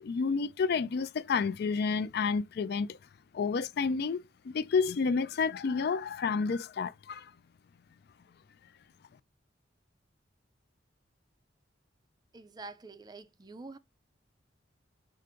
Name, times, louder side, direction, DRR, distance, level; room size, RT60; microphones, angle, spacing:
voice 1, 0.0-3.0 3.3-7.3, left 5 dB, 60° left, 0.4 m, -30 dB
voice 2, 12.3-13.8, right 3 dB, 20° right, 0.4 m, -46 dB
4.8 x 2.5 x 4.3 m
head